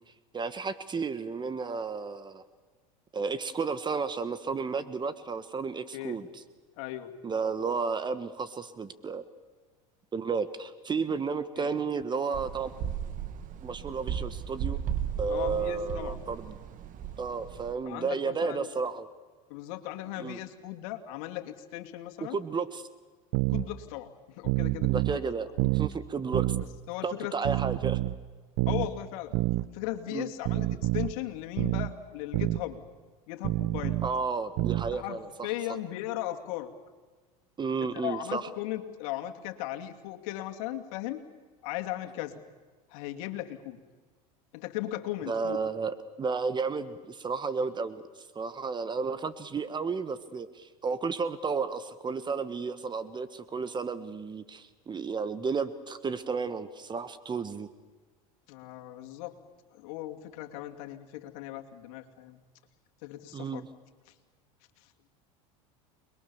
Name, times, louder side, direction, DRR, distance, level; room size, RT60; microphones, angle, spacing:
voice 1, 0.3-2.4 3.1-6.3 7.2-9.2 10.1-12.7 13.6-14.8 15.2-16.5 17.2-19.1 20.2-20.4 22.3-22.8 24.9-26.5 27.0-28.0 30.1-30.3 34.0-35.3 37.6-38.4 45.3-57.7 63.3-63.7, right 5 dB, 25° right, 13 dB, 1.4 m, -32 dB
voice 2, 5.9-6.2 6.8-7.1 11.6-11.8 15.3-16.2 17.8-18.7 19.5-22.4 23.5-25.2 25.6-25.8 26.9-27.4 28.7-29.4 29.7-32.8 33.3-34.0 34.9-36.7 37.9-41.2 41.6-42.4 42.9-43.8 44.5-45.6 58.5-59.4 59.7-62.4 63.0-63.6 64.1-64.2 64.8-64.9, left 14 dB, 70° left, 5 dB, 2.7 m, -37 dB
sound 1, 12.3-17.7, right 9 dB, 45° right, 1.9 m, -36 dB
sound 2, 23.3-23.7 24.4-25.2 25.6-25.9 26.3-26.7 27.4-28.2 28.6-28.9 29.3-29.7 30.5-31.1 31.6-31.9 32.3-32.6 33.4-34.1 34.6-34.9, right 18 dB, 65° right, 1.1 m, -27 dB
29.0 x 21.5 x 7.2 m, 1.3 s
hypercardioid pair, 100°, 18 cm